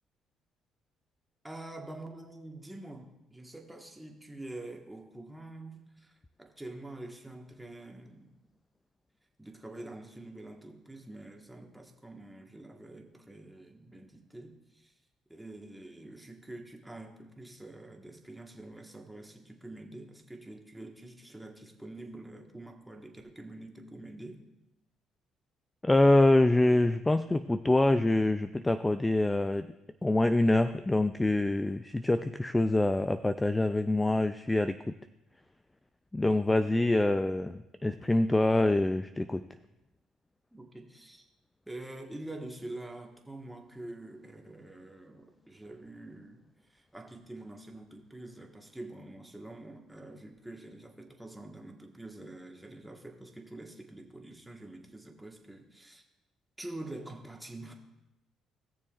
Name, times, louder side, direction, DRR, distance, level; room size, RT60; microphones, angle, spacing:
voice 1, 1.4-8.3 9.4-14.9 15.3-24.4 40.5-41.3 41.7-46.4 46.7-56.0 56.6-57.7, right 2 dB, 5° right, 2 dB, 1.4 m, -46 dB
voice 2, 25.8-29.7 30.0-34.8 36.1-39.4, left 2 dB, 15° left, 11 dB, 0.3 m, -25 dB
18.5 x 6.8 x 2.5 m, 0.92 s
supercardioid pair, 80°, 0 cm